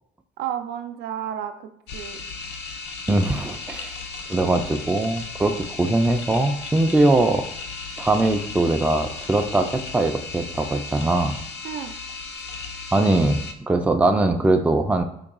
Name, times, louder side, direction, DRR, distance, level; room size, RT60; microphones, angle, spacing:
voice 1, 0.4-2.2 11.6-11.9, right 9 dB, 80° right, 7 dB, 0.5 m, -32 dB
sound 1, 1.9-13.5, left 4 dB, 85° left, 0.5 m, -35 dB
voice 2, 3.1-4.0 4.3-7.4 8.0-11.4 12.9-15.0, right 2 dB, 5° right, 5 dB, 0.3 m, -21 dB
3.9 x 2.3 x 3.6 m, 0.73 s
cardioid pair, 110°, 17 cm